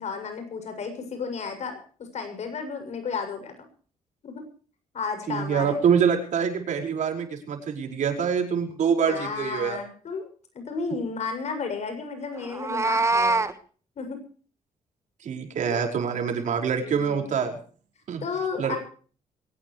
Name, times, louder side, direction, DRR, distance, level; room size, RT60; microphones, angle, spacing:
voice 1, 0.0-1.8 2.1-3.7 4.2-4.4 4.9-5.8 9.1-10.3 10.5-13.5 14.0-14.2 15.7-15.9 16.8-17.3 18.2-18.8, left 5 dB, 55° left, 7 dB, 7.2 m, -33 dB
voice 2, 5.3-9.8 15.2-17.6 18.1-18.2 18.6-18.8, right 7 dB, 65° right, 4 dB, 5.2 m, -25 dB
Meow, 12.4-13.5, right 3 dB, 20° right, 1.5 m, -23 dB
22.5 x 18.5 x 3.2 m, 0.42 s
cardioid pair, 110°, 13 cm